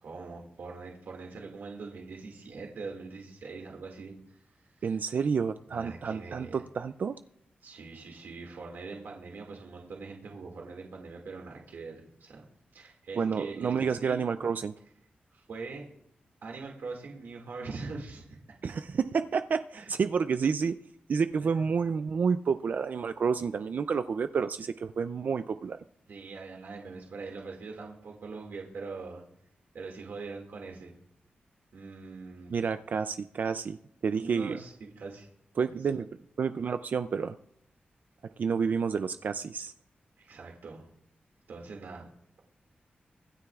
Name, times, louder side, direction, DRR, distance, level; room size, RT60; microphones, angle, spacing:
voice 1, 0.0-5.0 5.7-6.6 7.6-12.4 12.7-14.2 15.3-15.8 16.4-18.4 18.7-18.8 19.7-19.9 21.4-21.6 26.1-29.2 29.7-30.9 31.7-32.5 34.2-35.3 40.2-40.9 41.5-42.1, right 4 dB, 85° right, 0 dB, 2.1 m, -43 dB
voice 2, 4.8-7.2 13.2-14.7 18.6-20.8 21.1-25.8 32.5-33.8 34.0-34.6 35.6-36.1 36.4-37.3 38.4-39.7, right 6 dB, 55° right, 10 dB, 0.4 m, -29 dB
25.0 x 9.9 x 2.4 m, 0.72 s
wide cardioid pair, 150°, 3 cm